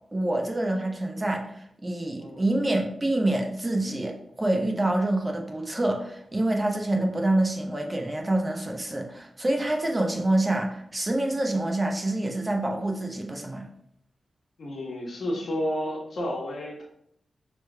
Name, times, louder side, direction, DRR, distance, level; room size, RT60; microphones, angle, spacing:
voice 1, 0.1-13.7, right 1 dB, 25° right, 2 dB, 0.7 m, -26 dB
voice 2, 14.6-16.8, equal, 70° left, -1 dB, 1.1 m, -31 dB
6.1 x 3.2 x 2.3 m, 0.72 s
cardioid pair, 55°, 0 cm